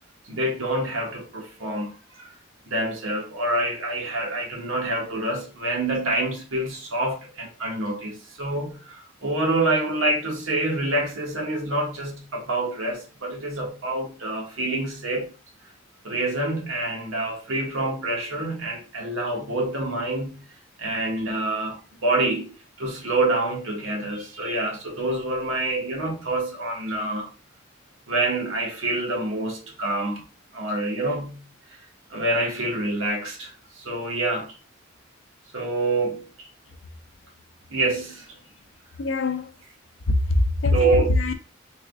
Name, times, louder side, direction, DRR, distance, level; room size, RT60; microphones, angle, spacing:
voice 1, 0.2-2.3 2.6-15.3 16.0-20.5 20.8-27.3 28.1-30.2 30.5-31.5 32.1-34.5 35.5-36.3 37.7-38.4 40.7-41.1, right 2 dB, 75° right, 1.1 m, -27 dB
voice 2, 39.0-39.5 40.1-41.3, left 2 dB, 60° left, 0.5 m, -22 dB
3.4 x 2.2 x 3.5 m
head